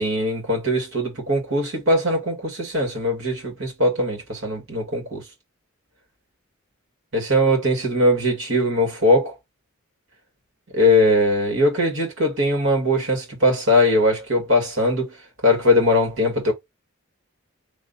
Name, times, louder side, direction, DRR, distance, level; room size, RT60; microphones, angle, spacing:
voice 1, 0.0-5.2 7.1-9.3 10.7-15.2 15.4-16.5, left 1 dB, 65° right, 2.2 m, -20 dB
3.6 x 3.1 x 4.1 m
head